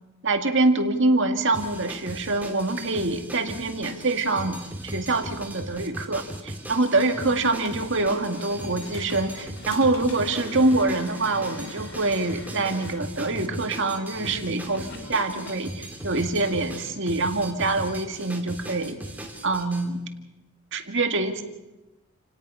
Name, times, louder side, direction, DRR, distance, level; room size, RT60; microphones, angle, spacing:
voice 1, 0.2-19.0 19.4-20.0 20.7-21.4, right 2 dB, 55° right, 6 dB, 2.0 m, -25 dB
sound 1, 1.5-19.9, right 1 dB, 10° right, 2.3 m, -38 dB
sound 2, 6.5-15.5, left 1 dB, 45° left, 1.8 m, -44 dB
sound 3, 7.4-13.0, left 3 dB, 80° left, 4.1 m, -47 dB
29.0 x 18.0 x 5.6 m, 1.0 s
head